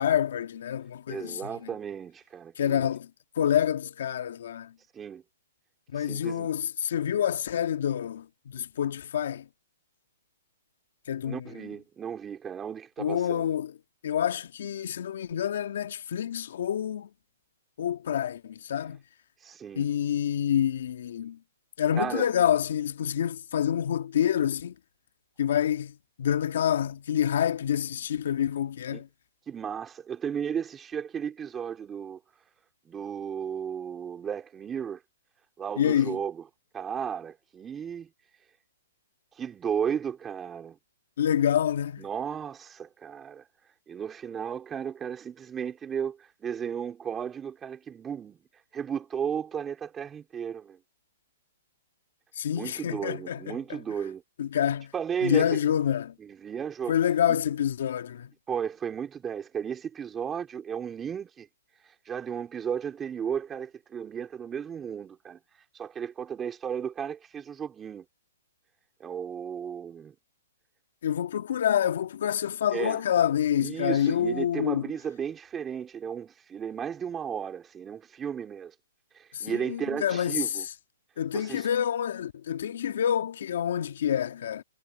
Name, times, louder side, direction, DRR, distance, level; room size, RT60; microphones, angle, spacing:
voice 1, 0.0-1.4 2.6-3.1 3.4-4.7 5.9-9.5 11.1-11.4 13.0-13.7 14.0-17.1 17.8-19.0 19.8-21.4 21.8-24.7 25.4-29.1 35.8-36.2 41.2-42.1 52.4-53.6 54.4-54.9 55.2-56.1 56.9-58.3 71.0-74.9 79.3-80.4 81.2-84.6, left 9 dB, 65° left, 2.0 m, -27 dB
voice 2, 1.1-2.9 4.9-5.2 5.9-6.5 11.2-13.5 19.4-19.9 21.9-22.3 28.9-29.0 29.5-32.2 32.8-35.0 35.6-36.4 36.7-38.1 39.4-40.8 42.0-43.4 43.9-48.4 48.7-50.8 52.5-54.2 54.9-55.5 56.2-57.0 57.3-57.4 58.5-61.5 62.0-65.4 65.7-68.0 69.0-70.1 72.7-73.0 73.6-78.7 79.1-80.6 81.3-81.7, right 8 dB, 15° right, 4.7 m, -34 dB
hypercardioid pair, 145°, 0 cm